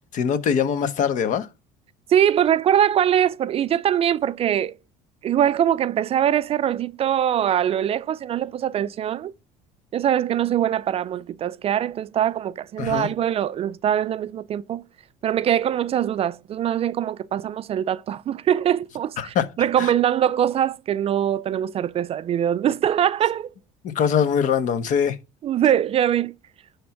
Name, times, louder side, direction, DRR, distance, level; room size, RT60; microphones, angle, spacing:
voice 1, 0.1-1.5 12.8-13.1 19.2-19.5 19.8-19.9 23.8-25.2, left 7 dB, 55° left, 1.2 m, -22 dB
voice 2, 2.1-4.8 5.2-9.3 9.9-14.8 15.2-23.5 25.4-26.3, right 10 dB, 40° right, 0.4 m, -22 dB
10.0 x 3.5 x 5.8 m
supercardioid pair, 105°, 15 cm